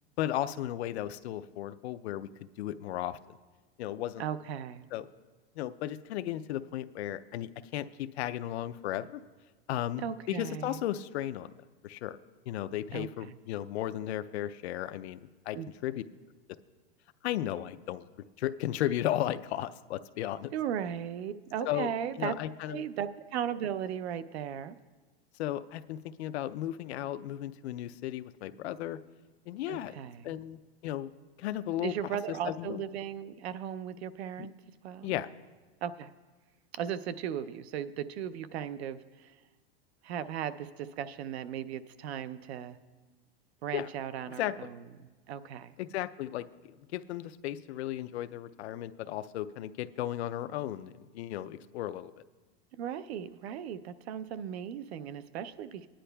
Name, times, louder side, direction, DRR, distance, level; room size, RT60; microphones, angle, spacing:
voice 1, 0.2-2.3 2.6-3.2 3.8-4.2 4.9-5.1 5.6-9.2 9.7-11.5 11.8-12.2 12.5-15.2 15.5-15.6 15.8-16.0 17.2-18.1 18.4-20.5 21.6-21.9 22.2-22.8 25.4-29.0 29.5-30.0 30.2-31.1 31.4-31.9 32.3-32.8 34.4-34.5 35.0-35.3 43.7-43.9 44.4-44.5 45.8-46.5 46.9-52.1, left 13 dB, 85° left, 12 dB, 0.5 m, -35 dB
voice 2, 4.2-4.9 10.0-10.9 12.9-13.4 15.6-15.7 20.5-22.4 22.7-24.8 29.7-30.4 31.8-34.5 34.8-35.1 35.8-36.1 36.7-39.4 40.0-42.8 43.6-45.7 52.7-55.9, right 9 dB, 80° right, 14 dB, 0.6 m, -37 dB
18.0 x 10.0 x 2.2 m, 1.3 s
supercardioid pair, 165°, 32 cm